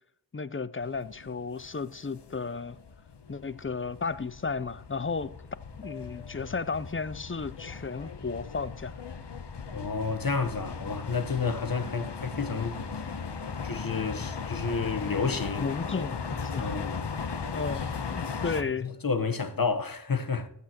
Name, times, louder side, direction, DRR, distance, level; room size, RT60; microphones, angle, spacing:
voice 1, 0.3-2.8 3.3-5.4 5.8-8.9 15.6-16.8 17.5-18.9, left 4 dB, 30° left, 0.5 m, -34 dB
sound 1, 0.8-18.6, left 5 dB, 80° left, 0.9 m, -38 dB
voice 2, 9.7-13.1 13.6-15.7 16.6-17.0 18.8-20.5, left 5 dB, 55° left, 1.1 m, -30 dB
19.5 x 8.4 x 2.9 m
wide cardioid pair, 45°, 41 cm